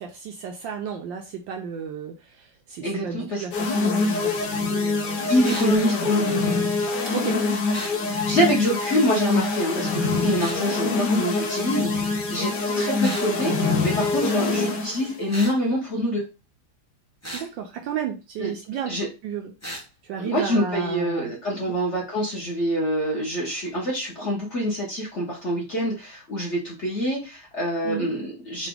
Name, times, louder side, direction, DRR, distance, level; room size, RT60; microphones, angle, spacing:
voice 1, 0.0-5.3 7.1-7.4 17.3-19.5 20.0-21.3 27.8-28.1, right 7 dB, 75° right, 3 dB, 1.1 m, -33 dB
voice 2, 2.8-3.4 5.3-6.4 8.1-16.2 18.4-18.5 18.9-19.1 20.2-28.7, equal, 40° left, -4 dB, 1.1 m, -26 dB
sound 1, 3.5-15.1, left 3 dB, 60° left, 1.4 m, -24 dB
sound 2, 5.4-5.7 7.7-8.0 10.4-10.6 13.0-13.3 15.3-15.6 17.2-17.5 19.6-19.8, equal, 20° left, 0.4 m, -35 dB
3.9 x 2.5 x 3.4 m, 0.29 s
omnidirectional pair, 2.4 m